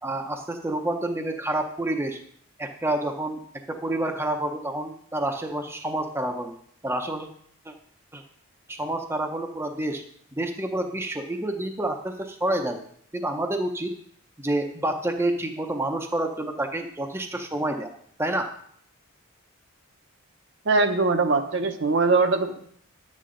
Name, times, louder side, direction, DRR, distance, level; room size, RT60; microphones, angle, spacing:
voice 1, 0.0-2.2 2.6-3.4 3.7-6.5 6.8-7.3 7.7-7.8 8.1-8.2 8.7-10.0 10.4-12.8 13.1-13.9 14.4-17.9 18.2-18.5, right 1 dB, 10° right, 4 dB, 0.6 m, -28 dB
voice 2, 20.6-22.6, right 3 dB, 55° right, 6 dB, 0.8 m, -21 dB
10.5 x 8.4 x 3.8 m, 0.64 s
head